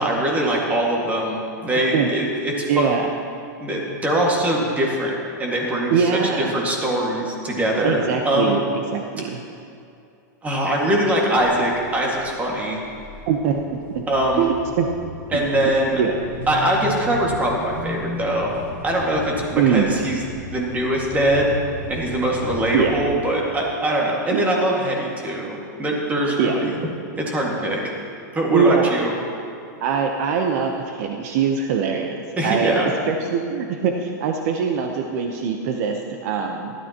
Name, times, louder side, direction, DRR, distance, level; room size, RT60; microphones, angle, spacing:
voice 1, 0.0-2.9 3.6-5.1 5.4-6.1 6.4-8.6 10.4-12.8 14.1-14.5 15.3-16.0 16.5-18.5 18.8-20.2 20.5-26.7 27.2-27.9 28.3-29.1 32.4-32.9, right 1 dB, 15° right, -2 dB, 1.9 m, -22 dB
voice 2, 2.7-3.1 5.9-6.5 7.8-9.4 13.3-14.0 14.4-14.9 15.3-15.5 16.0-16.1 19.6-19.9 22.7-22.9 24.3-24.4 26.4-26.5 28.5-28.9 29.8-32.7 33.1-36.7, right 6 dB, 55° right, 3 dB, 0.9 m, -22 dB
sound 1, 11.4-23.1, left 2 dB, 15° left, 2.6 m, -36 dB
16.0 x 12.0 x 3.0 m, 2.6 s
supercardioid pair, 140°, 10 cm